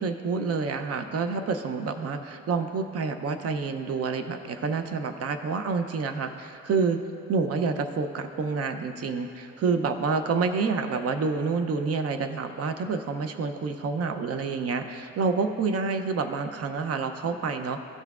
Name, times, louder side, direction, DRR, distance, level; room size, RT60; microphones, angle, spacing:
voice 1, 0.0-7.0 7.3-17.8, right 4 dB, 50° right, 8 dB, 0.6 m, -28 dB
14.5 x 5.7 x 2.4 m, 2.5 s
cardioid pair, 90°, 30 cm